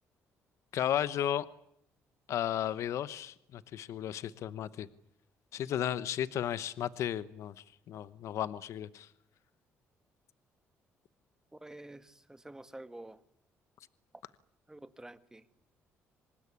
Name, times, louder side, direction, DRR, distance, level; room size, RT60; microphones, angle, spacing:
voice 1, 0.7-1.5 2.3-4.9 5.5-7.5 7.9-9.1, left 10 dB, 70° left, 16 dB, 1.0 m, -34 dB
voice 2, 11.5-13.2 14.7-15.5, right 1 dB, 10° right, 11 dB, 1.8 m, -49 dB
25.5 x 19.5 x 9.8 m, 0.74 s
cardioid pair, 85°, 5 cm